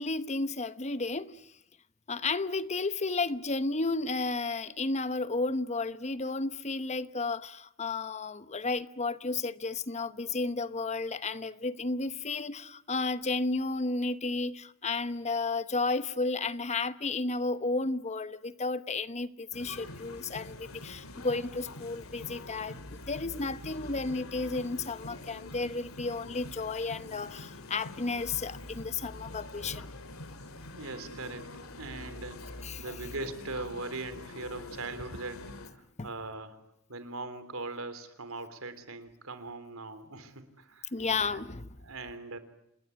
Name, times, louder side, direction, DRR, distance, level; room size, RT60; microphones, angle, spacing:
voice 1, 0.0-1.5 2.1-29.9 32.6-33.0 36.0-36.1 40.9-41.7, left 3 dB, 35° left, 1.0 m, -33 dB
sound 1, 19.5-35.7, left 2 dB, 90° left, 2.5 m, -45 dB
voice 2, 30.8-31.5 31.8-36.6 36.9-41.5 41.8-42.4, right 3 dB, 85° right, 3.6 m, -41 dB
28.0 x 20.0 x 9.8 m
head